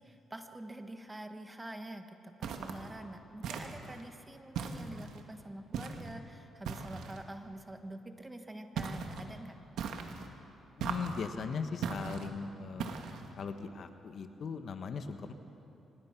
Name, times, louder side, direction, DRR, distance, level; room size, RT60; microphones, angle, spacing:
voice 1, 0.0-9.5, right 1 dB, 15° right, 6 dB, 1.5 m, -46 dB
sound 1, 2.4-2.9 3.4-4.0 4.5-5.2 5.7-6.1 6.6-7.2 8.8-9.2 9.8-10.3 10.8-11.3 11.8-12.3 12.8-13.3, right 6 dB, 80° right, 1.7 m, -38 dB
voice 2, 10.8-12.9 13.4-15.3, left 5 dB, 55° left, 8 dB, 1.3 m, -39 dB
25.0 x 20.0 x 6.0 m, 2.8 s
cardioid pair, 105°, 0 cm